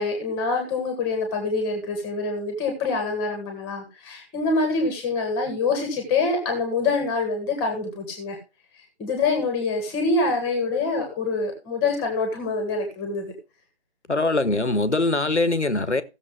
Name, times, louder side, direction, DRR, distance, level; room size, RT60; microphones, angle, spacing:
voice 1, 0.0-8.4 9.0-13.3, left 3 dB, 10° left, 1.8 m, -25 dB
voice 2, 14.1-16.0, left 2 dB, 80° left, 1.4 m, -22 dB
15.5 x 7.2 x 3.6 m
figure-of-eight pair, 155°, 34 cm